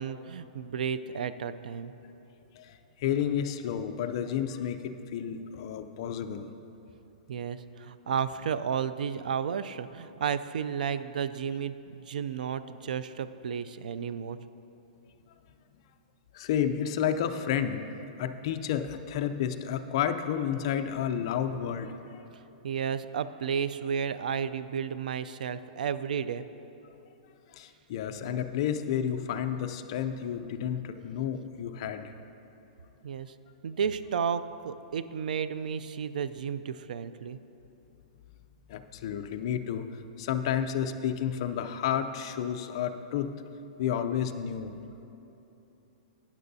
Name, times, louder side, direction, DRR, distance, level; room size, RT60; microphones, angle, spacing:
voice 1, 0.0-1.9 7.3-14.4 22.6-26.4 33.0-33.3 33.6-37.4, right 7 dB, 85° right, 14 dB, 0.4 m, -32 dB
voice 2, 2.6-6.5 16.3-17.8 18.2-22.2 27.5-32.1 38.7-39.9 40.2-43.3 43.8-44.7, left 9 dB, 40° left, 8 dB, 0.4 m, -31 dB
13.0 x 9.6 x 2.7 m, 3.0 s
hypercardioid pair, 170°, 4 cm